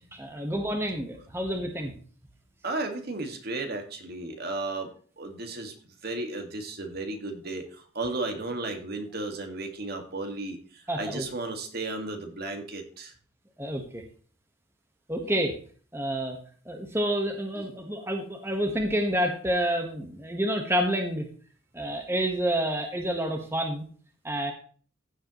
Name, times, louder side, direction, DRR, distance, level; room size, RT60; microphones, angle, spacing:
voice 1, 0.1-1.9 10.9-11.3 13.6-14.0 15.1-15.6 15.9-16.4 16.6-21.3 21.7-23.9 24.2-24.5, equal, 15° right, 4 dB, 1.3 m, -28 dB
voice 2, 2.6-4.9 5.2-5.7 6.0-13.1 17.6-17.7, right 2 dB, 55° right, 5 dB, 1.9 m, -34 dB
15.0 x 7.7 x 3.1 m, 0.42 s
head